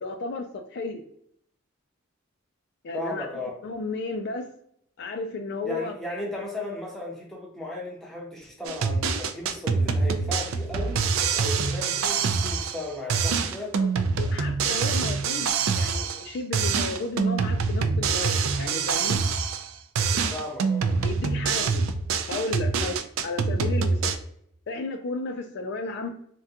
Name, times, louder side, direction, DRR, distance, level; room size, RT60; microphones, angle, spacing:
voice 1, 0.0-1.0 2.8-3.3 3.6-4.5 5.0-6.0 13.8-13.9 14.2-19.2 21.0-21.9 22.3-24.1 24.7-26.1, left 3 dB, 55° left, 6 dB, 0.3 m, -33 dB
voice 2, 2.9-3.6 5.6-11.0 11.4-13.7 20.3-20.9, left 1 dB, ahead, -3 dB, 0.7 m, -35 dB
sound 1, 8.6-12.8 13.1-16.3 16.5-19.7 19.9-24.2, right 5 dB, 75° right, 0.4 m, -25 dB
3.5 x 2.2 x 2.7 m, 0.68 s
head